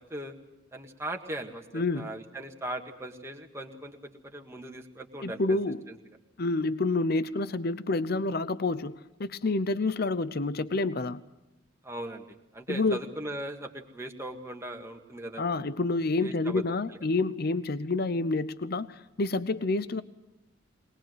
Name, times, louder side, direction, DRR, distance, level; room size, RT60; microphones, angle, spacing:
voice 1, 0.7-5.6 5.9-6.0 11.8-12.3 12.5-15.4 16.2-16.6, right 1 dB, 15° right, 2 dB, 1.8 m, -39 dB
voice 2, 1.7-2.1 5.2-5.8 6.4-11.2 12.7-13.0 15.4-20.0, left 3 dB, 50° left, 15 dB, 0.7 m, -28 dB
22.5 x 20.5 x 7.9 m, 0.97 s
head